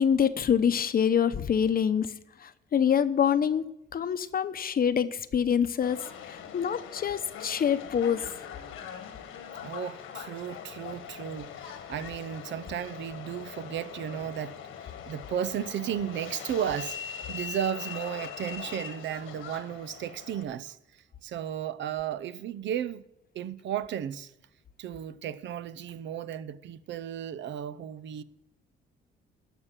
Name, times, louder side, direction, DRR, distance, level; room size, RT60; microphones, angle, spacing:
voice 1, 0.0-2.1 2.4-3.7 3.9-8.3, left 8 dB, 45° left, 0.8 m, -26 dB
Subway metro underground, 5.8-20.4, left 7 dB, 90° left, 1.5 m, -42 dB
voice 2, 9.6-23.0 23.3-24.3 24.8-28.2, right 9 dB, 70° right, 0.7 m, -34 dB
12.5 x 5.5 x 8.3 m
cardioid pair, 90°, 20 cm